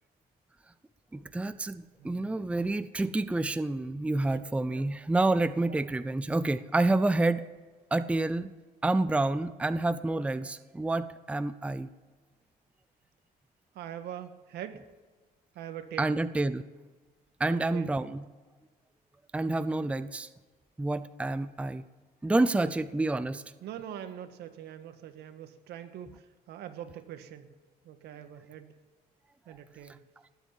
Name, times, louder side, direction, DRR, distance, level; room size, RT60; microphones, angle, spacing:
voice 1, 1.1-7.4 7.9-8.5 8.8-11.9 16.0-16.6 17.4-18.2 19.3-20.3 20.8-21.8 22.2-23.4, right 2 dB, 5° right, 13 dB, 0.6 m, -28 dB
voice 2, 13.7-14.8 15.5-16.2 17.4-17.9 23.6-27.5 27.8-28.7 29.4-30.0, right 10 dB, 75° right, 8 dB, 1.7 m, -43 dB
20.0 x 8.4 x 7.4 m, 1.4 s
cardioid pair, 110°, 17 cm